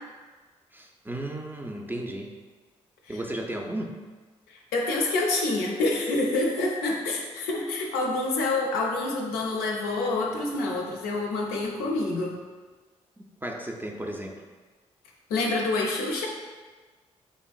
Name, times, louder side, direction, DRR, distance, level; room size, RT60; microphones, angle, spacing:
voice 1, 0.7-2.3 3.1-4.0 13.4-14.4, right 1 dB, 15° right, 1 dB, 0.4 m, -34 dB
voice 2, 4.5-12.4 15.3-16.3, left 2 dB, 80° left, -1 dB, 0.4 m, -27 dB
3.0 x 2.4 x 2.3 m, 1.3 s
hypercardioid pair, 40°, 15 cm